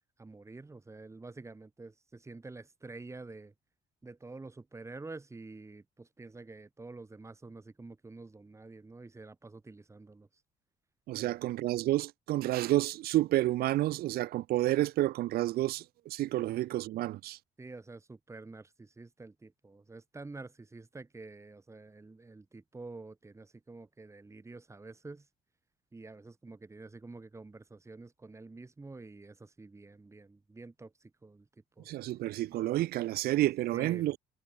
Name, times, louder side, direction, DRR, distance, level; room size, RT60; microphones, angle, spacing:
voice 1, 0.2-3.5 4.0-10.4 11.2-11.4 17.6-25.3 25.9-31.5 31.8-31.9 32.6-32.7 33.7-34.1, right 3 dB, 15° right, 3.8 m, -48 dB
voice 2, 11.1-17.4 31.8-34.2, right 15 dB, 65° right, 0.6 m, -30 dB
cardioid pair, 110°, 17 cm